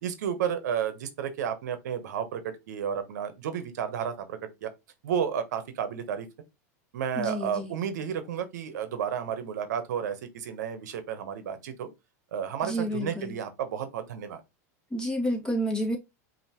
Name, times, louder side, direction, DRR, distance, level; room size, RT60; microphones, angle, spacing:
voice 1, 0.0-4.7 5.0-6.3 6.9-11.9 12.3-14.4, right 8 dB, 80° right, 0.9 m, -32 dB
voice 2, 7.1-7.7 12.6-13.3 14.9-16.0, equal, 10° left, 1.7 m, -30 dB
5.4 x 2.8 x 2.9 m
hypercardioid pair, 110°, 9 cm